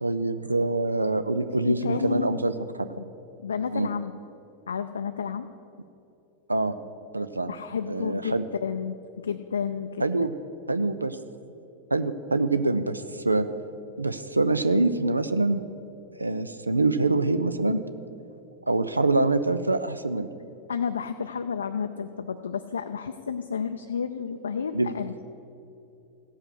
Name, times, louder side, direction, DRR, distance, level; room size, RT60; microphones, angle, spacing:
voice 1, 0.0-2.5 2.8-2.9 3.7-3.9 6.5-6.8 7.1-7.5 7.9-8.4 10.0-10.4 10.7-11.2 11.9-13.5 14.0-15.7 16.2-17.8 18.7-20.3 24.7-24.9, right 2 dB, 80° right, 11 dB, 0.4 m, -25 dB
voice 2, 1.6-2.3 2.9-3.1 3.4-4.1 4.7-5.5 7.5-10.0 20.7-25.1, left 6 dB, 70° left, 7 dB, 0.4 m, -31 dB
16.0 x 5.6 x 6.2 m, 2.8 s
figure-of-eight pair, 90°, 0 cm